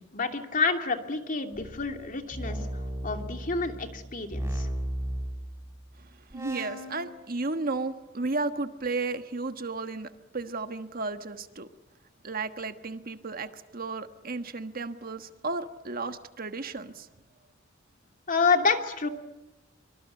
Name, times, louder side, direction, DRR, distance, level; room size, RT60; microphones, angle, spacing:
voice 1, 0.0-2.7 3.0-4.7 18.3-19.1, left 4 dB, 45° left, 2.9 m, -28 dB
sound 1, 1.5-5.9 6.3-7.0, right 1 dB, 15° right, 7.3 m, -35 dB
voice 2, 6.0-11.7 12.2-17.1, right 3 dB, 45° right, 1.4 m, -34 dB
25.0 x 25.0 x 8.5 m
head